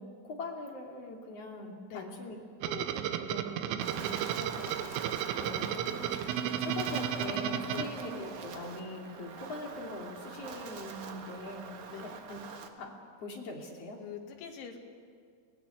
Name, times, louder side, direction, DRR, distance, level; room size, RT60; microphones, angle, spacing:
voice 1, 0.0-2.4 2.6-5.1 6.4-11.7 12.0-12.4 12.8-14.0, left 2 dB, 35° left, 0 dB, 3.2 m, -42 dB
sound 1, 2.6-8.6, right 10 dB, 90° right, 3.5 m, -34 dB
Wind, 3.8-12.7, right 5 dB, 60° right, 2.2 m, -44 dB
voice 2, 5.4-6.2 7.7-7.9 11.9-12.2 14.0-14.8, left 8 dB, 80° left, 3 dB, 4.5 m, -44 dB
25.0 x 18.0 x 9.4 m, 2.2 s
omnidirectional pair, 5.5 m